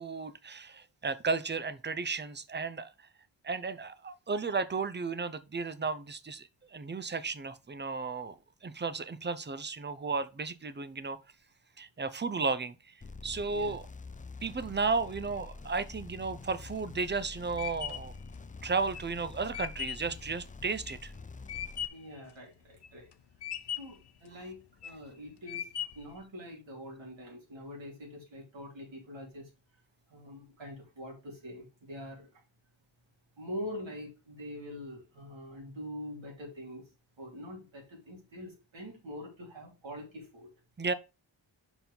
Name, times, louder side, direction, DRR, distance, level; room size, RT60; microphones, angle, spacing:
voice 1, 0.0-3.1 3.4-8.3 8.6-11.2 11.8-13.0 13.2-13.8 14.4-18.1 18.6-21.1 40.8-40.9, right 4 dB, 25° right, 0.6 m, -34 dB
sound 1, 13.0-21.9, left 3 dB, 20° left, 0.4 m, -47 dB
sound 2, 16.7-22.1 22.6-23.1 23.4-24.1 24.6-25.1 25.5-26.2, left 9 dB, 60° left, 0.7 m, -39 dB
voice 2, 21.9-23.1 23.8-25.7 25.9-29.5 30.1-32.4 33.4-36.8 37.2-40.5, equal, 75° right, 3.3 m, -44 dB
6.0 x 4.6 x 5.3 m
wide cardioid pair, 100°, 46 cm